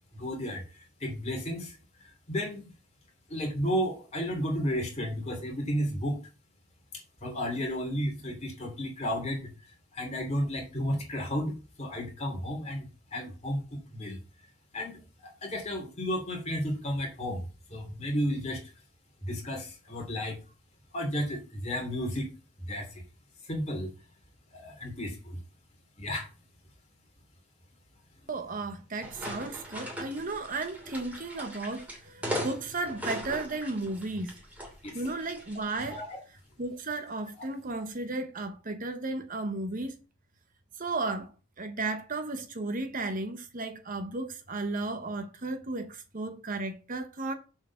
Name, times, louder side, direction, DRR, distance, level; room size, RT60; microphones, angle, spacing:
voice 1, 0.1-0.6 1.0-1.7 2.3-2.7 3.3-6.2 7.2-9.5 9.9-11.5 11.8-14.2 14.7-17.4 17.7-18.6 19.2-20.4 20.9-22.3 22.7-22.9 23.5-23.9 24.5-25.4 26.0-26.3 34.8-35.0 35.9-36.2, equal, 30° left, 2.7 m, -32 dB
voice 2, 28.3-34.3 34.9-36.0 36.6-40.0 40.8-41.3 41.6-47.3, right 2 dB, 40° right, 0.9 m, -34 dB
sound 1, 29.0-36.1, equal, 5° right, 2.6 m, -39 dB
7.3 x 4.5 x 6.9 m
head